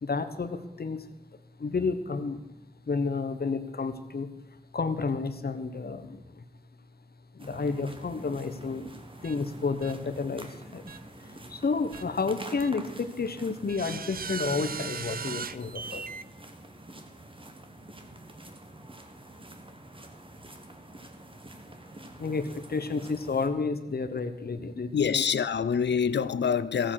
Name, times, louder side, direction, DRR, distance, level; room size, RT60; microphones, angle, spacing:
voice 1, 0.0-1.1 1.6-2.4 2.9-4.3 4.7-6.4 7.3-8.9 9.2-10.9 11.2-16.0 22.2-25.2, left 4 dB, 65° left, 1.1 m, -31 dB
sound 1, 7.4-23.5, right 1 dB, 30° right, 1.6 m, -47 dB
sound 2, 9.2-9.4 9.8-9.9 10.9-11.0 11.9-12.0 12.6-12.7 13.7-16.2, right 6 dB, 55° right, 0.5 m, -37 dB
voice 2, 24.9-26.9, left 7 dB, 90° left, 0.5 m, -26 dB
15.0 x 7.6 x 6.6 m
wide cardioid pair, 60°, 17 cm